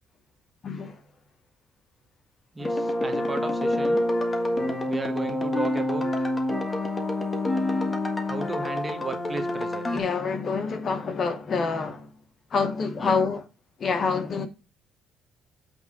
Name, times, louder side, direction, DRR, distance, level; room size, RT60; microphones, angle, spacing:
voice 1, 0.6-1.0 9.9-12.1 12.5-13.4 13.8-14.5, left 5 dB, 45° left, 1.0 m, -27 dB
voice 2, 2.5-4.0 4.9-6.3 8.2-9.9 13.0-13.2, right 3 dB, 20° right, 1.3 m, -34 dB
sound 1, 2.6-10.0, left 1 dB, 20° left, 1.4 m, -27 dB
8.4 x 3.5 x 6.0 m
cardioid pair, 110°, 0 cm